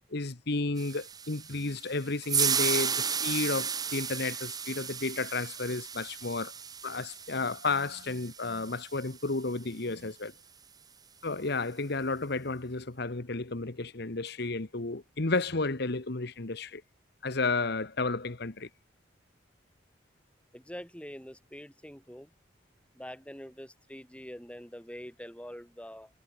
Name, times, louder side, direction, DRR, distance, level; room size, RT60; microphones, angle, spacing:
voice 1, 0.1-6.5 6.8-10.3 11.2-16.8 17.2-18.7, left 3 dB, 60° left, 1.3 m, -32 dB
sound 1, 0.8-9.1, right 7 dB, 20° right, 0.9 m, -34 dB
voice 2, 20.5-22.3 23.0-26.1, equal, 5° left, 7.3 m, -45 dB
head